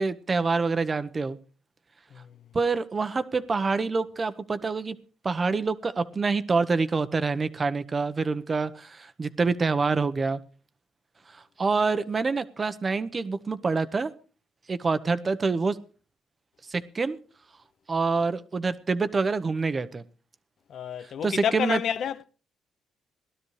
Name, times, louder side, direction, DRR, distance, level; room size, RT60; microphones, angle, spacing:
voice 1, 0.0-1.4 2.5-4.9 5.2-10.4 11.3-14.1 14.7-15.8 16.7-17.2 17.9-20.0 21.2-21.8, right 4 dB, 30° right, 1.0 m, -26 dB
voice 2, 20.7-22.2, left 8 dB, 65° left, 0.8 m, -29 dB
19.0 x 12.5 x 3.3 m
cardioid pair, 90°, 0 cm